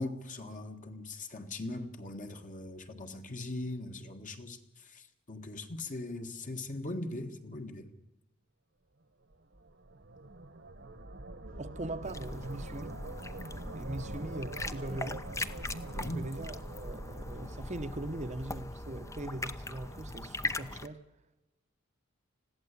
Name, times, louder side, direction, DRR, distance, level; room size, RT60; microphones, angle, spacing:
voice 1, 0.0-7.9 15.9-16.2, left 2 dB, 40° left, 1.7 m, -40 dB
sound 1, 9.3-18.5, right 2 dB, 60° right, 1.4 m, -44 dB
sound 2, 11.5-18.9, equal, 80° left, 2.6 m, -52 dB
voice 2, 11.6-13.0 13.7-15.3 16.0-21.0, right 1 dB, 35° right, 1.0 m, -41 dB
sound 3, 12.0-20.9, left 2 dB, 15° left, 0.8 m, -41 dB
20.5 x 15.5 x 8.4 m
head